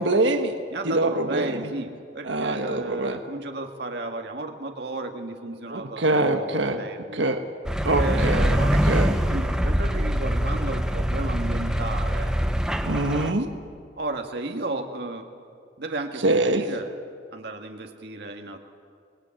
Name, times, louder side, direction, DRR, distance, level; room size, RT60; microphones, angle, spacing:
voice 1, 0.0-0.5 0.8-1.7 2.2-3.2 5.7-6.9 7.1-7.4 7.8-9.2 12.8-13.5 16.2-16.6, right 2 dB, 80° right, 6 dB, 1.4 m, -24 dB
voice 2, 0.7-7.2 7.9-12.3 14.0-15.3 15.8-16.9 17.3-18.6, right 2 dB, 60° right, 4 dB, 1.8 m, -33 dB
sound 1, 7.7-13.3, equal, 5° right, 0.9 m, -24 dB
26.0 x 20.0 x 8.9 m, 2.2 s
head